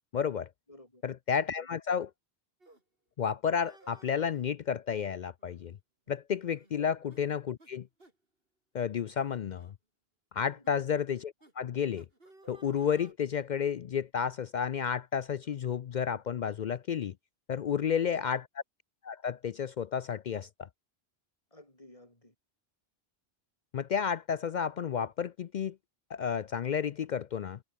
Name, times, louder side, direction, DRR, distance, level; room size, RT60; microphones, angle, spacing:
voice 1, 0.1-0.5 1.0-2.1 3.2-5.8 6.1-7.9 8.7-9.7 10.3-12.1 12.5-17.1 17.5-18.4 19.0-20.7 23.7-25.8 26.1-27.6, left 7 dB, 55° left, 0.6 m, -31 dB
voice 2, 0.7-1.0 1.4-1.7 6.7-6.9 10.5-10.9 18.0-18.3 21.5-22.3, left 1 dB, 35° left, 4.8 m, -54 dB
sound 1, 2.6-2.8 3.6-4.5 5.4-5.8 6.1-6.2 6.5-6.8 7.1-7.2 7.6-7.7 8.0-8.2 8.8-9.0 9.5-9.7 10.6-10.8 11.4-11.5 11.9-13.1, right 2 dB, 65° right, 4.9 m, -58 dB
omnidirectional pair, 1.0 m